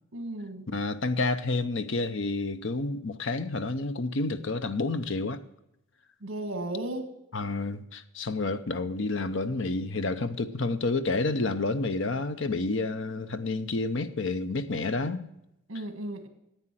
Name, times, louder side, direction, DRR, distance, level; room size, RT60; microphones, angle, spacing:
voice 1, 0.1-0.7 6.2-7.1 15.7-16.3, right 1 dB, 65° right, 1.8 m, -35 dB
voice 2, 0.7-5.4 7.3-15.2, left 3 dB, 60° left, 0.7 m, -29 dB
9.8 x 8.7 x 7.6 m
head